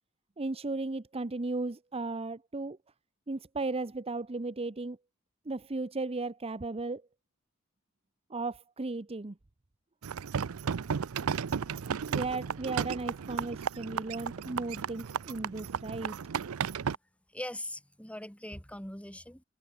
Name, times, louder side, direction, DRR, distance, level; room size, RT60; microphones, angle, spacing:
voice 1, 0.4-2.8 3.3-5.0 5.5-7.0 8.3-9.3 12.1-16.2, right 3 dB, 30° right, 0.7 m, -35 dB
sound 1, 10.0-17.0, right 7 dB, 75° right, 0.5 m, -34 dB
voice 2, 17.3-19.4, left 1 dB, 5° left, 6.4 m, -41 dB
head